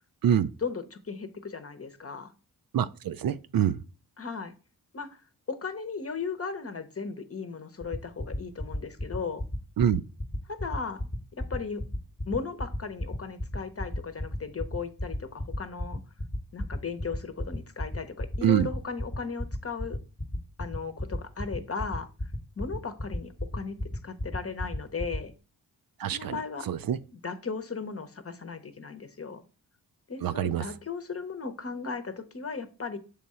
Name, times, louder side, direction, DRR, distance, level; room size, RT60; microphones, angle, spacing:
voice 1, 0.6-2.3 4.2-4.5 4.9-5.2 5.5-9.4 10.5-11.8 12.3-16.0 16.5-20.0 20.6-23.8 24.0-25.3 26.1-26.7 27.1-29.4 30.1-33.0, left 5 dB, 35° left, 0.9 m, -36 dB
voice 2, 2.7-3.8 9.8-10.0 18.4-18.7 26.0-26.4 26.7-27.0 30.2-30.6, right 9 dB, 65° right, 0.5 m, -25 dB
sound 1, 7.8-25.2, left 1 dB, 15° left, 1.0 m, -31 dB
7.0 x 3.6 x 4.3 m
cardioid pair, 60°, 39 cm